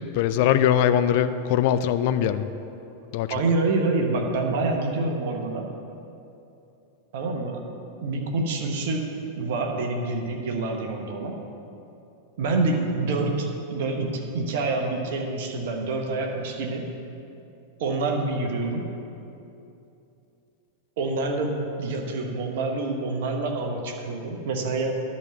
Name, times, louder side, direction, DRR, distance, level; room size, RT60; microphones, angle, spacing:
voice 1, 0.1-2.5 3.1-3.3, left 10 dB, 50° left, 11 dB, 0.4 m, -21 dB
voice 2, 3.3-5.7 7.1-7.7 8.0-9.0 9.4-11.4 12.4-16.9 17.8-18.8 21.0-21.5 21.8-25.0, right 3 dB, 55° right, 2 dB, 1.1 m, -27 dB
10.5 x 4.2 x 7.5 m, 2.8 s
figure-of-eight pair, 90°, 0 cm